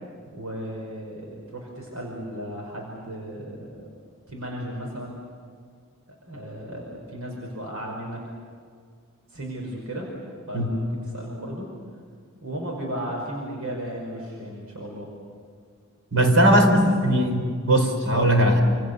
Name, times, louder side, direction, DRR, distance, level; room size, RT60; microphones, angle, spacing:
voice 1, 0.3-3.8 4.3-5.2 6.3-8.2 9.3-10.1 10.5-11.7 12.4-15.1 16.5-17.0 17.3-17.5, right 1 dB, 90° right, -1 dB, 5.5 m, -35 dB
voice 2, 16.1-18.6, right 1 dB, 65° right, 4 dB, 4.8 m, -19 dB
28.5 x 28.0 x 6.9 m, 2.1 s
head